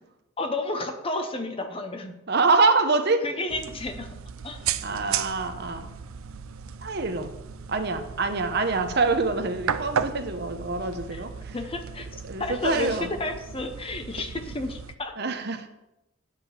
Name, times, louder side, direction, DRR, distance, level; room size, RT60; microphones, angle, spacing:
voice 1, 0.4-2.1 3.2-4.1 4.4-4.6 11.1-11.2 11.5-12.1 12.4-15.1, left 2 dB, 25° left, 6 dB, 0.9 m, -31 dB
voice 2, 2.3-3.2 4.8-6.0 6.8-7.3 7.7-11.6 12.2-13.1 15.2-15.7, right 3 dB, 50° right, 8 dB, 0.8 m, -25 dB
sound 1, 3.5-15.0, right 7 dB, 80° right, 0.5 m, -35 dB
9.3 x 5.2 x 7.1 m, 0.91 s
head